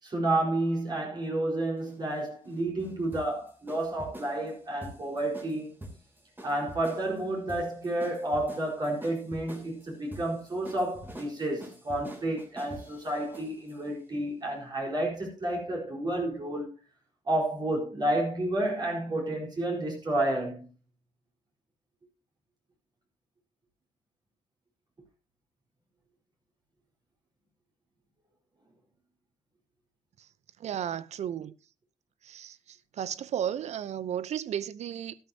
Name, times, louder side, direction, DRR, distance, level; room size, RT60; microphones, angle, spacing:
voice 1, 0.0-5.7 6.4-16.7 17.3-20.7, right 1 dB, 35° right, 4.6 m, -30 dB
sound 1, 1.8-13.8, right 1 dB, 15° right, 3.1 m, -46 dB
voice 2, 30.6-31.5 32.2-32.6 33.0-35.2, right 9 dB, 60° right, 0.7 m, -33 dB
12.5 x 12.5 x 2.9 m
cardioid pair, 115°, 13 cm